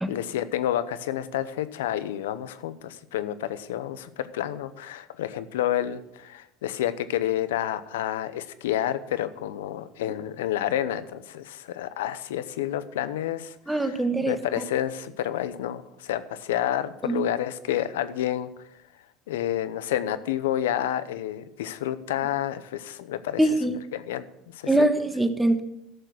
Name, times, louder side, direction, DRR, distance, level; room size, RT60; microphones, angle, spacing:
voice 1, 0.1-18.5 19.3-24.9, left 11 dB, 90° left, 13 dB, 0.8 m, -29 dB
voice 2, 13.7-14.3 17.1-17.2 23.4-23.7 24.7-25.6, right 1 dB, 5° right, 7 dB, 1.3 m, -22 dB
12.0 x 6.8 x 6.3 m, 0.85 s
supercardioid pair, 95°, 0 cm